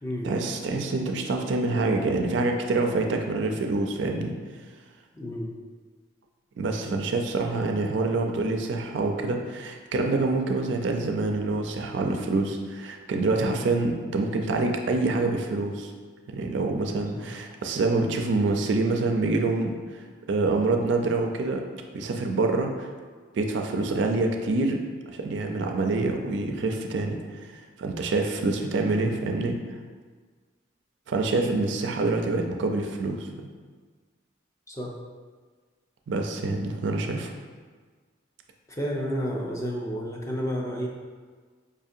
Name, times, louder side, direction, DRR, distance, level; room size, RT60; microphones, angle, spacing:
voice 1, 0.2-4.3 6.6-15.9 16.3-21.6 21.9-22.9 23.3-24.8 25.1-29.6 31.1-33.3 36.1-37.3, right 3 dB, 65° right, 3 dB, 0.4 m, -26 dB
voice 2, 5.2-5.5 17.1-17.3 34.7-35.0 38.7-40.9, equal, 15° left, -2 dB, 0.4 m, -31 dB
5.0 x 2.7 x 2.4 m, 1.5 s
head